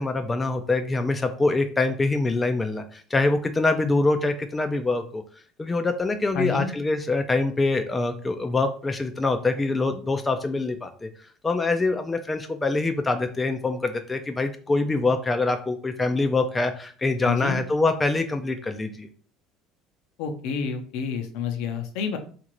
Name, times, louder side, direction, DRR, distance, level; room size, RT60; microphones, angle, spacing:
voice 1, 0.0-5.2 5.6-11.1 11.4-19.1, left 3 dB, 15° left, 6 dB, 0.3 m, -24 dB
voice 2, 6.3-6.7 17.2-17.6 20.2-22.2, left 6 dB, 75° left, 5 dB, 0.6 m, -29 dB
2.9 x 2.5 x 3.0 m, 0.43 s
supercardioid pair, 110°, 0 cm